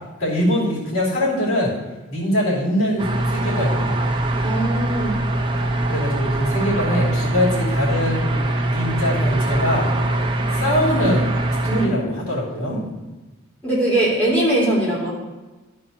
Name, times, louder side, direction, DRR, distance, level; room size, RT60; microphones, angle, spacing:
voice 1, 0.2-1.7 2.1-3.9 5.9-9.9 10.5-11.3 11.7-12.8, equal, 85° left, -6 dB, 2.7 m, -22 dB
sound 1, 3.0-11.9, right 1 dB, 25° right, 0.8 m, -22 dB
voice 2, 4.4-5.2 11.7-12.1 13.6-15.1, right 1 dB, 10° left, -8 dB, 3.2 m, -21 dB
12.5 x 4.4 x 5.3 m, 1.1 s
head